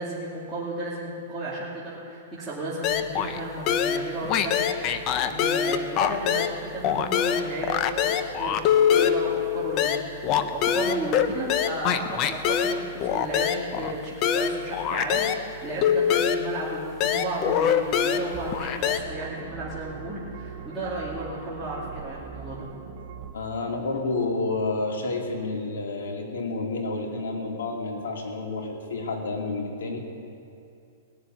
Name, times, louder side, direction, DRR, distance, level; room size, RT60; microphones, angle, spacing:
voice 1, 0.0-8.6 8.9-22.7, right 2 dB, 5° right, -11 dB, 2.6 m, -34 dB
sound 1, 2.8-3.4 3.7-6.6 6.8-15.4 15.8-19.0, left 8 dB, 30° left, 0.7 m, -24 dB
sound 2, 18.3-23.3, right 8 dB, 50° right, 0.8 m, -41 dB
voice 2, 23.3-30.0, left 3 dB, 85° left, 1 dB, 2.9 m, -30 dB
19.5 x 7.4 x 9.4 m, 2.5 s
hypercardioid pair, 155°, 0 cm